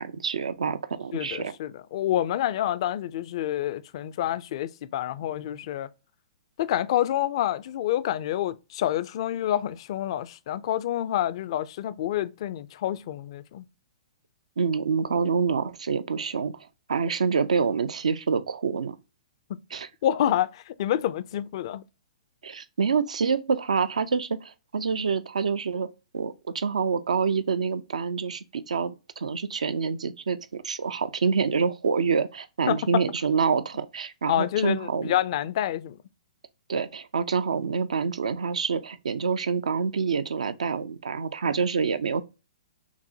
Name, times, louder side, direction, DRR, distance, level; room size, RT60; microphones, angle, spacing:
voice 1, 0.0-1.5 14.6-19.0 19.7-19.9 22.4-25.9 26.1-35.1 36.7-42.2, right 5 dB, 80° right, 0.4 m, -27 dB
voice 2, 1.1-5.9 6.6-13.7 19.5-19.6 20.0-21.8 32.7-33.0 34.3-36.0, left 12 dB, 50° left, 0.4 m, -28 dB
5.9 x 2.1 x 2.7 m
hypercardioid pair, 125°, 4 cm